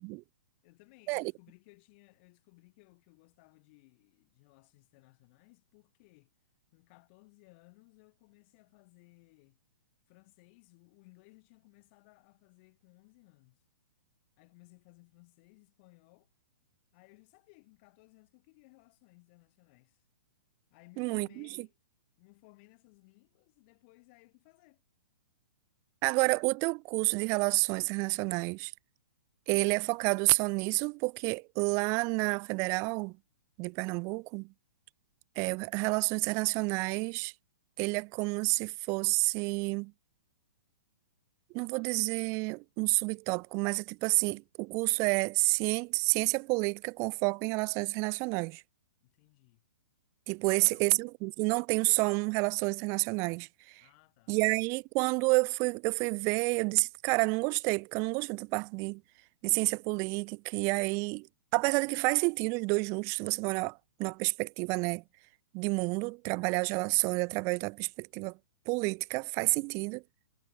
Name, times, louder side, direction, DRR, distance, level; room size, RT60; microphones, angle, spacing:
voice 1, 0.6-6.3 6.7-9.6 10.1-13.6 14.4-16.3 16.9-20.0 20.7-21.8 22.2-24.8 49.0-49.6 50.4-50.9 53.8-54.4 61.8-62.0, left 27 dB, 40° left, 6.1 m, -61 dB
voice 2, 21.0-21.5 26.0-28.7 29.5-33.2 33.6-34.5 35.4-37.3 37.8-39.9 41.5-48.6 50.3-53.8 54.3-59.0 59.4-61.3 61.5-65.0 65.5-68.4 68.7-70.0, right 29 dB, 35° right, 0.5 m, -29 dB
hypercardioid pair, 120°, 9 cm